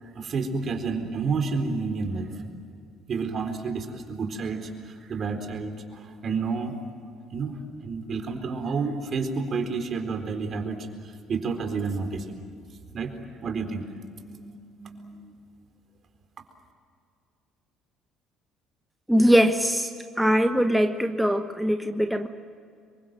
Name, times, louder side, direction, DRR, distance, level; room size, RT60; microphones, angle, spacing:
voice 1, 0.0-2.5 3.1-6.7 7.3-12.4 12.9-13.1 13.4-13.9 14.2-15.3, right 4 dB, 50° right, 6 dB, 4.1 m, -30 dB
voice 2, 19.1-22.3, equal, ahead, 6 dB, 1.3 m, -22 dB
26.0 x 23.5 x 7.7 m, 2.4 s
hypercardioid pair, 60°, 0 cm